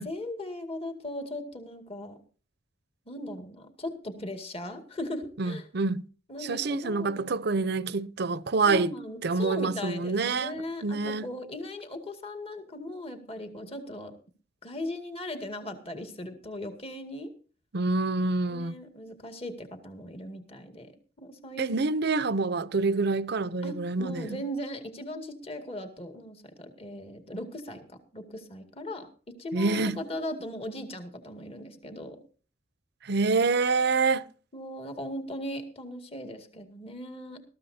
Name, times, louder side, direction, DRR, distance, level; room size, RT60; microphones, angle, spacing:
voice 1, 0.0-2.2 3.1-5.7 6.3-7.2 8.7-14.2 14.6-17.3 18.5-20.9 21.2-21.7 23.6-29.1 29.4-32.2 34.5-37.4, left 1 dB, 30° left, 2.2 m, -38 dB
voice 2, 5.4-6.0 6.4-8.9 9.2-11.3 17.7-18.7 21.6-24.4 29.5-30.0 33.0-34.3, right 3 dB, 60° right, 0.6 m, -27 dB
20.5 x 14.0 x 2.8 m
head